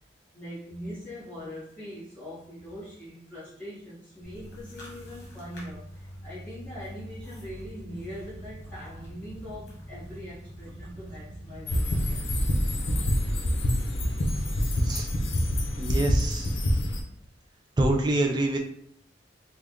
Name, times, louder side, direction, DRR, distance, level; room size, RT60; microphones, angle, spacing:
voice 1, 0.3-5.8 6.2-12.3, equal, 10° left, -12 dB, 1.3 m, -42 dB
sound 1, 4.2-13.4, equal, 55° left, 1.3 m, -44 dB
sound 2, 11.7-17.0, equal, 75° left, 0.7 m, -26 dB
voice 2, 15.8-16.5 17.8-18.6, right 1 dB, 20° right, 2 dB, 0.3 m, -26 dB
3.4 x 2.3 x 3.7 m, 0.67 s
head